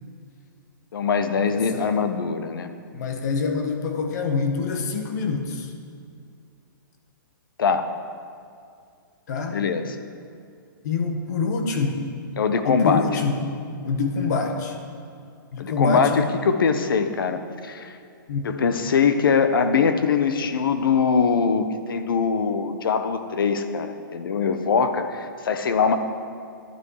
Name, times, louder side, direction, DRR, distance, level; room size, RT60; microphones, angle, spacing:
voice 1, 0.9-2.7 7.6-7.9 9.4-9.9 12.4-13.0 15.6-17.9 18.4-26.0, left 5 dB, 75° left, 8 dB, 1.2 m, -22 dB
voice 2, 1.5-2.0 2.9-5.7 9.3-9.6 10.8-12.0 12.6-13.5 13.8-14.8 15.5-16.3 18.3-18.5, left 4 dB, 50° left, 4 dB, 1.5 m, -26 dB
12.5 x 11.0 x 4.9 m, 2.4 s
hypercardioid pair, 160°, 12 cm